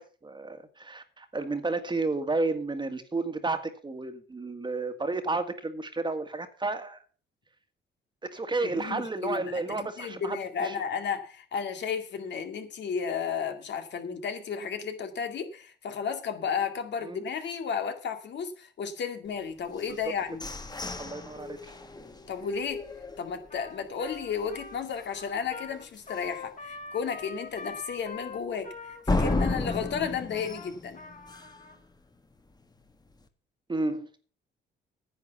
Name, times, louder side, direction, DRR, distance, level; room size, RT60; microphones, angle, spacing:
voice 1, 0.0-7.0 8.2-10.8 17.0-17.2 21.0-21.7 33.7-34.1, right 3 dB, 25° right, 1.8 m, -32 dB
voice 2, 8.6-9.4 10.0-20.4 22.3-22.8 23.2-28.7 29.1-31.0, left 6 dB, 60° left, 2.2 m, -33 dB
sound 1, 19.8-23.7 24.1-24.2 24.6-25.0 25.4-25.5 26.0-26.1 29.1-31.7, left 2 dB, 20° left, 1.5 m, -33 dB
Trumpet, 23.5-31.8, left 4 dB, 40° left, 2.9 m, -44 dB
10.0 x 8.3 x 7.0 m
cardioid pair, 90°, 20 cm